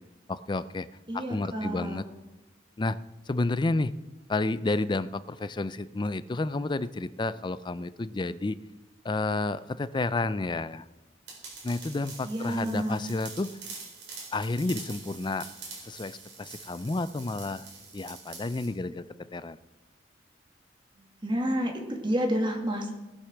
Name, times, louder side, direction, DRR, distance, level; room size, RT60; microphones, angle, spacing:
voice 1, 0.3-0.9 1.1-2.1 2.8-3.0 3.3-3.9 4.3-8.6 9.0-10.8 11.6-13.5 14.3-15.5 15.9-17.7 17.9-19.0 19.3-19.6, left 2 dB, 25° left, 15 dB, 0.4 m, -30 dB
voice 2, 1.1-2.0 12.2-13.0 21.2-22.9, equal, 25° right, 2 dB, 1.9 m, -29 dB
sound 1, 11.3-18.7, right 4 dB, 65° right, 4.5 m, -45 dB
18.5 x 6.7 x 6.1 m, 1.1 s
head